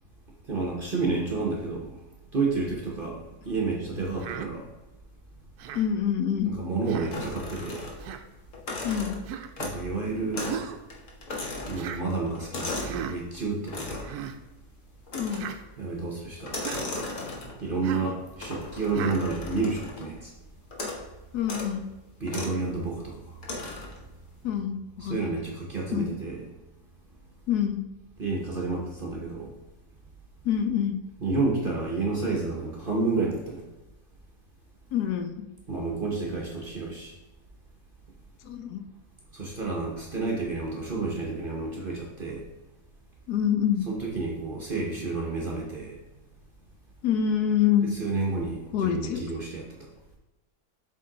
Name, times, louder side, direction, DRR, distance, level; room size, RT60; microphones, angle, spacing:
voice 1, 0.5-2.0 2.3-4.7 6.4-7.9 9.6-10.5 11.7-14.1 15.8-17.1 17.6-20.4 22.2-23.4 25.0-26.4 28.2-29.5 31.2-33.6 35.7-37.1 39.3-42.4 43.9-46.0 48.0-49.6, right 3 dB, 40° right, -1 dB, 0.8 m, -30 dB
Human voice, 4.2-4.5 5.6-5.9 6.9-7.2 8.0-8.2 9.3-9.5 10.5-10.8 11.8-12.0 12.8-13.2 14.0-14.4 15.3-15.6 16.6-16.9 17.8-18.1 18.9-19.2, right 8 dB, 75° right, 1.0 m, -36 dB
voice 2, 5.7-6.5 8.8-9.2 15.1-15.5 21.3-21.8 24.4-25.3 25.9-26.2 27.5-27.8 30.4-31.0 34.9-35.5 38.4-38.8 43.3-43.8 47.0-47.9 48.7-49.2, left 9 dB, 75° left, 6 dB, 1.1 m, -26 dB
sound 1, 7.1-8.2 8.5-9.9 10.3-10.6 10.9-13.0 13.7-14.2 15.1-15.6 16.4-17.7 18.4-20.1 20.7-21.1 21.4-21.7 22.3-22.6 23.4-24.0, left 2 dB, 50° left, 1.3 m, -36 dB
7.8 x 3.8 x 3.8 m, 1.1 s
omnidirectional pair, 1.8 m